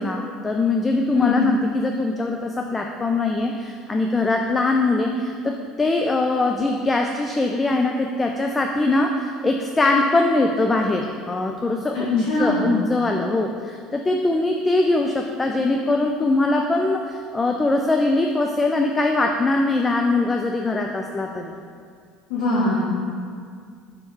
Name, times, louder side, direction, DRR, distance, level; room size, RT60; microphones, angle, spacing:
voice 1, 0.0-21.6, left 2 dB, 20° left, 3 dB, 0.4 m, -22 dB
voice 2, 11.9-12.7 22.3-22.8, left 2 dB, 60° left, -8 dB, 1.2 m, -22 dB
5.6 x 4.4 x 4.8 m, 2.1 s
figure-of-eight pair, 65°, 0 cm